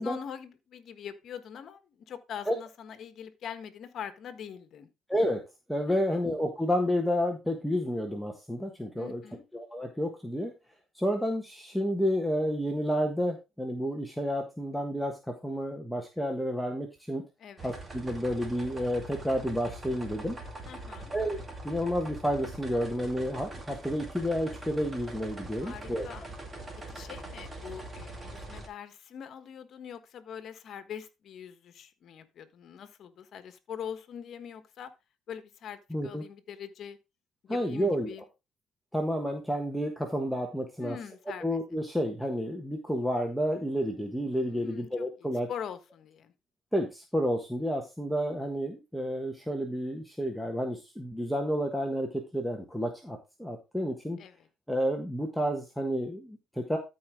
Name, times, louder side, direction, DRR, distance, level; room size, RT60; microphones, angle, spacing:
voice 1, 0.0-4.9 5.9-6.0 8.9-9.4 17.4-17.8 20.6-21.1 25.6-26.3 26.9-34.9 35.3-37.0 37.4-38.2 40.8-41.6 44.5-46.3 54.2-54.5, left 8 dB, 55° left, 11 dB, 1.4 m, -43 dB
voice 2, 5.1-5.4 5.7-9.2 9.5-10.5 10.9-17.2 17.6-20.4 21.1-21.4 21.6-26.1 35.9-36.2 37.5-38.1 38.9-41.0 41.4-45.5 46.7-54.2 54.7-56.8, equal, ahead, 2 dB, 1.4 m, -30 dB
sound 1, 17.6-28.7, right 2 dB, 25° right, 2.3 m, -43 dB
13.0 x 4.8 x 3.6 m, 0.26 s
cardioid pair, 95°, 0 cm